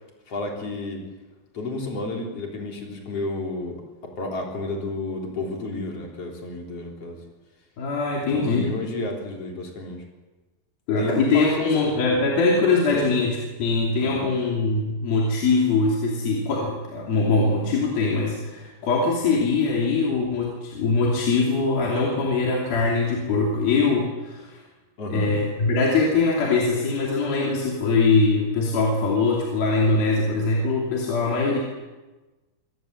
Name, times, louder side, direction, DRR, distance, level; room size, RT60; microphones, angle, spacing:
voice 1, 0.3-1.0 1.5-7.2 8.3-10.0 10.9-11.7 12.9-13.1 14.0-14.3 25.0-25.3, left 2 dB, 35° left, 1 dB, 4.4 m, -31 dB
voice 2, 7.8-8.7 10.9-24.6 25.1-31.6, left 3 dB, 60° left, -2 dB, 4.7 m, -22 dB
25.5 x 17.5 x 7.8 m, 1.2 s
omnidirectional pair, 5.0 m